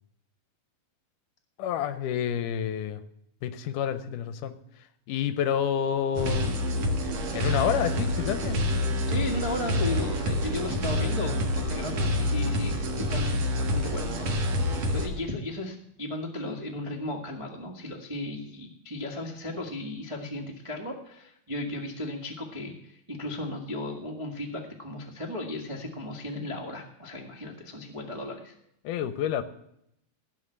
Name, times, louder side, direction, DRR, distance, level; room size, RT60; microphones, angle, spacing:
voice 1, 1.6-3.0 3.4-4.6 5.1-6.5 7.3-8.6 28.8-29.4, left 9 dB, 75° left, 12 dB, 2.1 m, -28 dB
sound 1, 6.2-15.1, left 1 dB, 55° right, 2.6 m, -27 dB
voice 2, 9.1-14.3 14.6-28.5, left 1 dB, 30° right, -2 dB, 0.5 m, -35 dB
16.5 x 5.6 x 8.0 m, 0.76 s
omnidirectional pair, 4.0 m